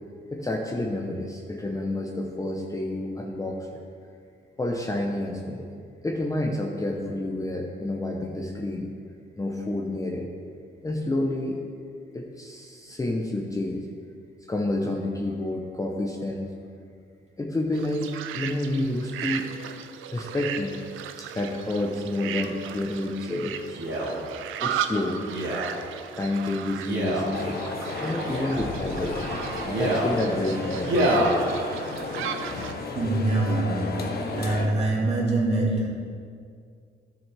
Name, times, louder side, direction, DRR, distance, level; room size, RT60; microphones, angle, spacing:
voice 1, 0.3-3.8 4.6-5.7 6.0-8.9 9.4-10.3 10.8-11.6 12.1-13.9 14.5-16.5 17.4-19.5 20.1-20.8 21.2-23.8 24.6-25.2 26.2-27.6 28.0-29.2 29.8-31.6, left 1 dB, 15° left, 0 dB, 0.9 m, -29 dB
sound 1, 17.7-32.7, right 9 dB, 90° right, 0.5 m, -36 dB
Male speech man speaking, 23.7-24.1 25.3-25.7 26.8-27.3 28.2-28.7 29.6-30.1 30.8-31.3 32.0-32.1, right 1 dB, 70° right, 2.4 m, -26 dB
sound 2, 27.3-34.7, left 3 dB, 50° left, 1.1 m, -33 dB
voice 2, 32.9-35.9, right 2 dB, 30° right, -4 dB, 2.5 m, -25 dB
12.5 x 6.6 x 3.5 m, 2.3 s
cardioid pair, 90°, 20 cm